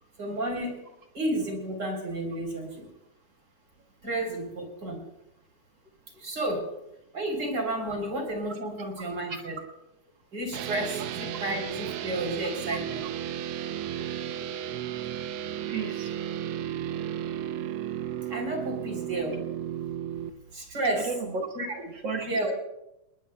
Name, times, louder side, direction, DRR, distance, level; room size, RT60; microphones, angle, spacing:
voice 1, 0.2-0.8 1.1-2.9 4.0-5.0 6.2-6.7 7.1-9.6 10.3-13.0 18.3-19.4 20.5-21.0 21.5-21.8 22.3-22.5, right 1 dB, 30° right, 2 dB, 4.2 m, -31 dB
sound 1, 10.5-20.3, right 10 dB, 75° right, 1.7 m, -34 dB
voice 2, 15.5-16.2 20.9-21.6 21.8-22.5, right 4 dB, 45° right, 3 dB, 1.6 m, -34 dB
29.5 x 19.5 x 2.3 m, 0.88 s
omnidirectional pair, 3.6 m